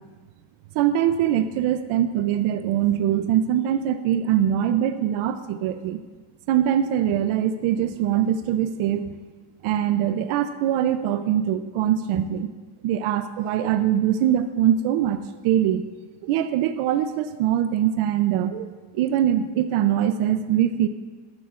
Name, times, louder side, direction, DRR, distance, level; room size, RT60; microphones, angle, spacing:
voice 1, 0.7-6.0 6.5-9.1 9.6-12.5 12.8-15.9 16.2-18.7 18.9-20.9, right 10 dB, 90° right, 10 dB, 0.6 m, -22 dB
13.0 x 11.5 x 2.4 m, 1.4 s
cardioid pair, 115°, 48 cm